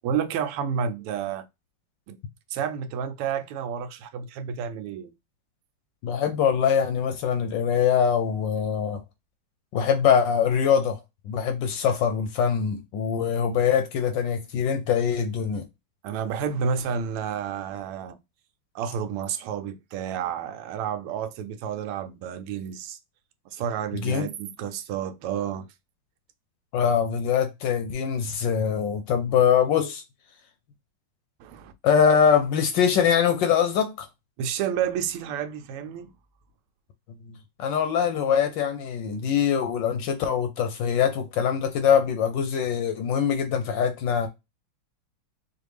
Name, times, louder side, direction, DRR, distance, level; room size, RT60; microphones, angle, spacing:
voice 1, 0.0-1.5 2.1-2.2 2.5-5.1 16.0-18.2 18.7-23.0 23.5-25.7 31.4-31.7 34.4-36.1, right 7 dB, 85° right, 1.5 m, -30 dB
voice 2, 6.0-9.0 9.7-11.0 11.3-15.6 23.9-24.3 26.7-30.0 31.8-34.1 37.6-44.3, left 7 dB, 70° left, 1.2 m, -23 dB
5.0 x 2.4 x 3.2 m
omnidirectional pair, 2.4 m